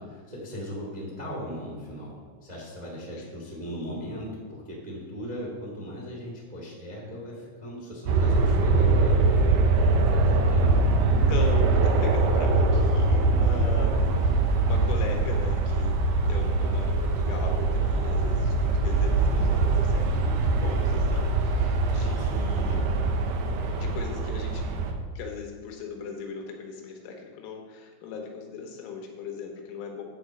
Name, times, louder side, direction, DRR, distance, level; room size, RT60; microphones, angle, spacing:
voice 1, 0.0-9.3 10.1-11.2 11.6-11.8 21.9-22.5, equal, 55° right, -5 dB, 0.4 m, -38 dB
sound 1, 8.1-24.9, right 3 dB, 85° right, 2.2 m, -23 dB
voice 2, 11.3-16.0 16.2-22.9 23.7-24.8 25.2-30.0, left 5 dB, 85° left, 2 dB, 3.9 m, -38 dB
11.0 x 4.9 x 7.8 m, 1.5 s
omnidirectional pair, 5.7 m